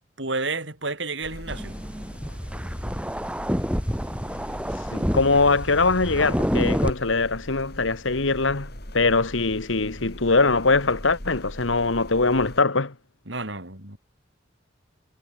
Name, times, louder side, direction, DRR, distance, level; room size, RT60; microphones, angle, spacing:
voice 1, 0.2-1.7 13.3-14.0, right 3 dB, 70° right, 6.1 m, -31 dB
sound 1, 1.2-12.6, equal, 55° left, 7.6 m, -41 dB
sound 2, 1.5-6.9, equal, 5° right, 5.0 m, -28 dB
voice 2, 4.9-12.9, left 3 dB, 80° left, 1.6 m, -22 dB
head